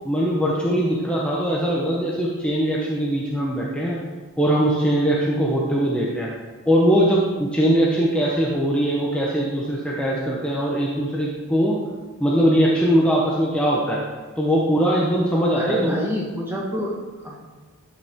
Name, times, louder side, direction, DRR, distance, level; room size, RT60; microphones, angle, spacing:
voice 1, 0.0-4.0 4.4-6.3 6.7-11.8 12.2-14.0 14.4-16.0, equal, 5° left, -5 dB, 0.9 m, -21 dB
voice 2, 15.5-17.4, equal, 10° right, -3 dB, 1.5 m, -27 dB
11.5 x 5.6 x 3.6 m, 1.4 s
head